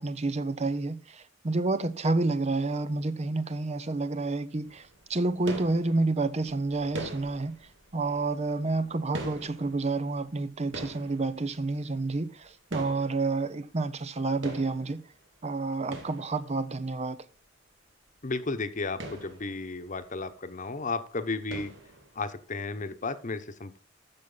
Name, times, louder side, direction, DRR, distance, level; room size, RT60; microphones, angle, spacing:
voice 1, 0.0-7.6 7.9-15.0 15.4-17.2, right 3 dB, 35° right, 0.6 m, -29 dB
sound 1, 4.6-14.2 14.4-16.9 17.4-17.5 17.8-17.9 18.1-18.3 18.7-20.5 20.8-21.1 21.5-22.5, right 1 dB, 80° right, 2.3 m, -44 dB
voice 2, 18.2-21.7 22.2-23.8, left 3 dB, 40° left, 1.0 m, -33 dB
14.0 x 6.0 x 3.9 m
head